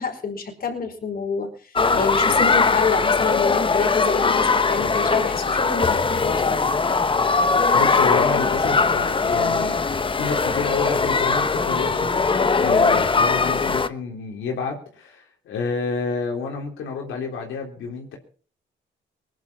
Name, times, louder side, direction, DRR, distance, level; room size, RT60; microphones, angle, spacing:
voice 1, 0.0-6.6 12.6-12.9, left 5 dB, 50° left, 5 dB, 5.0 m, -27 dB
sound 1, 1.7-13.9, left 4 dB, 25° left, 1.0 m, -20 dB
voice 2, 7.7-9.8 10.2-12.2 12.6-18.2, left 4 dB, 80° left, 0 dB, 3.8 m, -29 dB
19.5 x 11.0 x 5.6 m, 0.41 s
cardioid pair, 90°, 20 cm